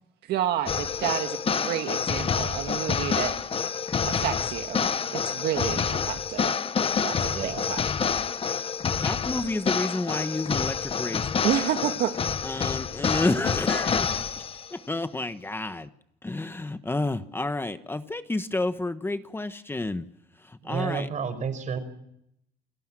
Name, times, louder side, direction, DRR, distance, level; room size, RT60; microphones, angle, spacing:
voice 1, 0.3-3.3 4.0-4.9 5.1-6.5 7.0-7.8 11.4-12.1, right 11 dB, 75° right, 6 dB, 1.7 m, -30 dB
sound 1, 0.7-14.7, left 6 dB, 35° left, 1.1 m, -28 dB
voice 2, 7.3-7.8 14.1-14.2 20.6-21.8, right 6 dB, 45° right, 12 dB, 5.3 m, -31 dB
voice 3, 9.0-11.4 12.4-14.2 14.7-15.9 16.2-20.0 20.6-21.1, left 2 dB, 15° left, 10 dB, 1.2 m, -30 dB
29.0 x 18.0 x 7.6 m, 0.76 s
cardioid pair, 110°, 17 cm